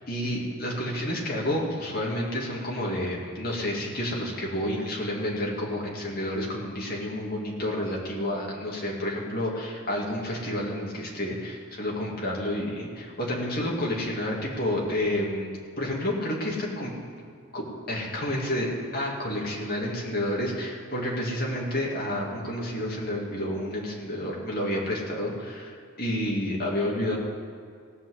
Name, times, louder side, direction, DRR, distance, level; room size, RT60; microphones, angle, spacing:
voice 1, 0.1-15.5 15.8-16.9 17.5-27.2, left 1 dB, 45° left, -3 dB, 2.5 m, -30 dB
17.0 x 6.1 x 7.8 m, 2.2 s
head